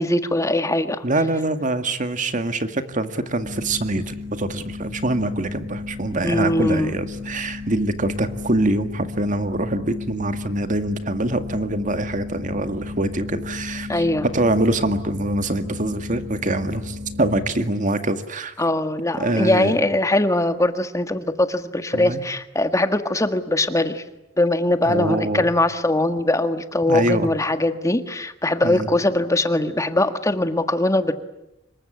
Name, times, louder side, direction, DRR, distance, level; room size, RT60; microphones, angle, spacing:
voice 1, 0.0-1.0 6.2-7.0 13.9-14.2 18.6-24.0 24.4-31.1, left 1 dB, 15° left, 9 dB, 1.7 m, -21 dB
voice 2, 1.0-14.0 14.3-18.5 19.2-19.7 21.9-22.2 24.8-25.5 26.9-27.3 28.6-28.9, right 2 dB, 45° right, 9 dB, 2.0 m, -24 dB
sound 1, 3.4-17.5, left 3 dB, 60° right, 3.5 m, -34 dB
26.5 x 22.5 x 9.9 m, 0.89 s
head